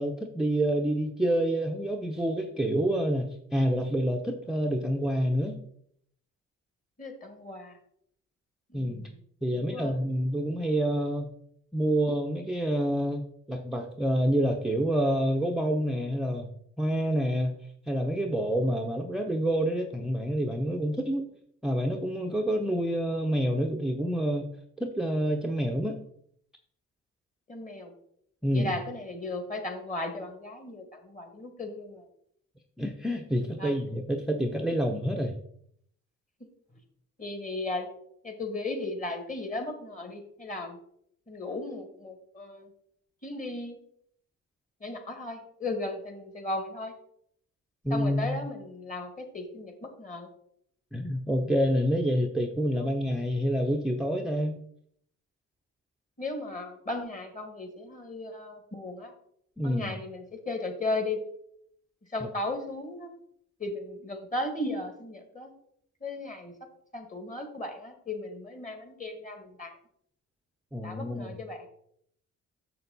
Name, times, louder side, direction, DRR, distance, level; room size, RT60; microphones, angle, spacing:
voice 1, 0.0-5.6 8.7-9.1 9.4-11.3 11.7-13.2 13.5-17.6 17.9-21.3 21.6-24.5 24.8-26.0 28.4-28.7 32.8-35.4 47.8-48.4 50.9-54.6 59.6-59.9 62.2-62.3 70.7-71.3, equal, ahead, 2 dB, 0.7 m, -28 dB
voice 2, 7.0-7.8 8.7-9.1 9.5-9.9 27.5-27.9 28.5-32.1 33.6-33.8 37.2-37.9 38.2-40.8 41.3-42.7 43.2-43.8 44.8-46.9 47.9-50.3 52.7-52.9 56.2-59.1 59.6-61.2 62.1-63.1 63.6-65.5 66.0-66.5 66.9-69.7 70.8-71.7, left 2 dB, 25° left, 5 dB, 2.0 m, -36 dB
6.7 x 6.7 x 4.0 m, 0.68 s
cardioid pair, 90°, 30 cm